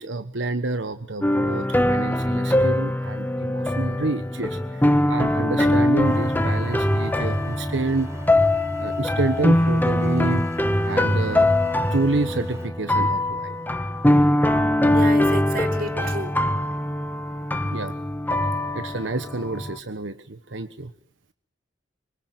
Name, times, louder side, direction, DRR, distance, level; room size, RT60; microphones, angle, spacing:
voice 1, 0.0-8.1 8.8-10.5 10.8-11.5 11.9-13.6 15.9-16.1 17.6-18.0 18.7-20.9, right 2 dB, 80° right, 10 dB, 1.2 m, -28 dB
sound 1, 1.2-19.8, left 1 dB, 10° left, 1.4 m, -22 dB
sound 2, 6.0-12.7, left 1 dB, 15° right, 4.7 m, -36 dB
voice 2, 14.9-16.4, right 2 dB, 50° right, 7 dB, 3.1 m, -31 dB
26.0 x 24.5 x 9.3 m, 0.64 s
head